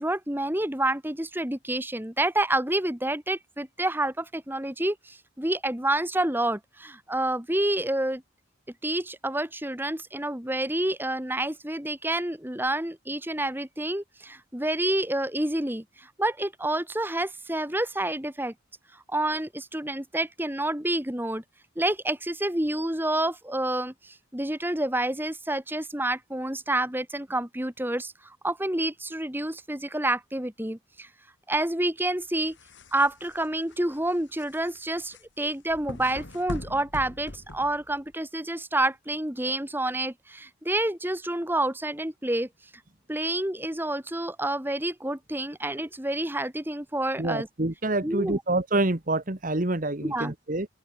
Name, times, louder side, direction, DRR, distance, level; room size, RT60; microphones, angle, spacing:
voice 1, 0.0-8.2 8.8-18.5 19.1-21.4 21.8-31.1 31.5-32.6 32.9-42.5 43.1-47.5 48.0-48.4 50.0-50.3, right 1 dB, 10° right, 1.9 m, -28 dB
sound 1, 32.2-38.1, left 1 dB, 60° left, 2.7 m, -42 dB
voice 2, 47.2-50.7, right 2 dB, 40° right, 1.4 m, -27 dB
open air
head